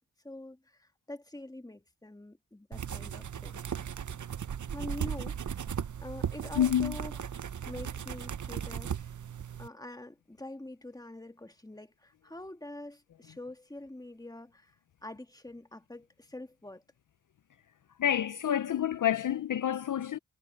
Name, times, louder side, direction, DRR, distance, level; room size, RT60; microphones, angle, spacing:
voice 1, 0.2-3.6 4.7-5.6 6.0-9.1 9.6-14.8 15.0-16.8, left 1 dB, 10° left, 1.6 m, -45 dB
sound 1, 2.7-9.7, right 8 dB, 55° right, 0.8 m, -37 dB
voice 2, 6.6-7.0 18.0-20.2, left 10 dB, 60° left, 0.5 m, -28 dB
cardioid pair, 65°, 36 cm